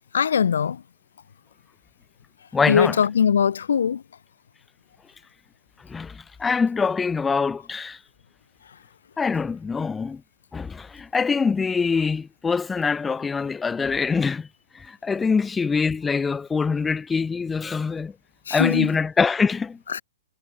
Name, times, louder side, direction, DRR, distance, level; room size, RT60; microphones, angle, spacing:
voice 1, 0.1-0.8 2.7-4.0 18.5-18.9 19.9-20.0, left 7 dB, 80° left, 3.3 m, -21 dB
voice 2, 2.5-3.0 5.9-8.0 9.2-10.2 10.5-14.5 14.7-18.1 18.5-19.8, left 5 dB, 10° left, 2.6 m, -24 dB
hypercardioid pair, 155°, 0 cm